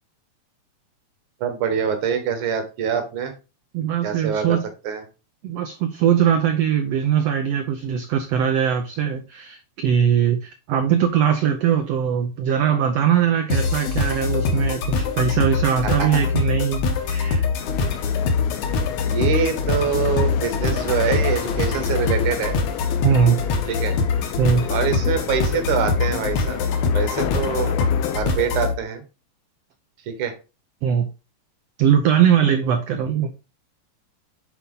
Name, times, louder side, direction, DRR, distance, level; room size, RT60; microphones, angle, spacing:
voice 1, 1.4-3.3 4.0-4.6 4.8-5.0 15.8-16.1 19.0-22.6 23.7-24.0 24.7-29.0 30.1-30.3, right 7 dB, 70° right, 2.6 m, -25 dB
voice 2, 3.7-4.7 5.4-17.4 23.0-23.4 24.4-24.7 30.8-31.1 31.8-33.3, right 8 dB, 85° right, 1.4 m, -21 dB
sound 1, 13.5-28.7, left 4 dB, 65° left, 2.1 m, -23 dB
sound 2, 17.6-28.2, left 12 dB, 85° left, 2.1 m, -33 dB
8.2 x 4.1 x 3.8 m
omnidirectional pair, 3.7 m